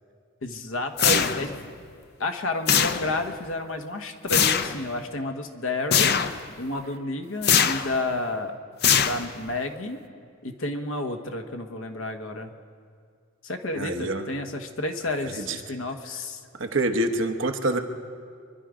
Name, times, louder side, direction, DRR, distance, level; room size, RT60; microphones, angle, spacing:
voice 1, 0.4-1.5 2.2-6.2 6.6-8.6 9.0-10.0 10.4-12.5 13.4-16.4, left 2 dB, 75° left, 6 dB, 1.2 m, -31 dB
sound 1, 1.0-1.6 2.7-3.3 4.3-4.8 5.9-6.4 7.4-8.0 8.8-9.5, left 8 dB, 50° left, 0.6 m, -22 dB
voice 2, 13.8-14.2 15.4-15.6 16.6-17.8, right 2 dB, 65° right, 6 dB, 1.0 m, -26 dB
24.5 x 11.0 x 5.0 m, 2.2 s
head